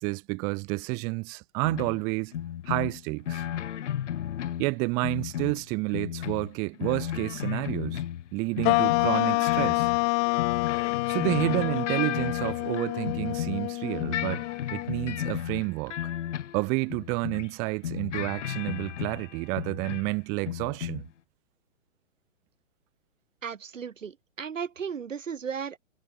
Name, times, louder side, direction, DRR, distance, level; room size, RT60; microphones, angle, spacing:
voice 1, 0.0-2.3 2.7-3.4 4.6-8.0 8.3-9.9 11.1-14.4 14.7-16.1 16.5-21.0, right 29 dB, 10° right, 0.3 m, -30 dB
sound 1, 1.6-2.0 2.3-4.8 5.0-8.3 8.6-13.7 14.0-17.5 17.8-20.2 20.4-21.1, left 10 dB, 65° left, 1.3 m, -34 dB
sound 2, 8.6-15.3, left 40 dB or more, 25° left, 0.8 m, -28 dB
voice 2, 23.4-25.8, right 7 dB, 75° right, 7.6 m, -35 dB
hypercardioid pair, 130°, 38 cm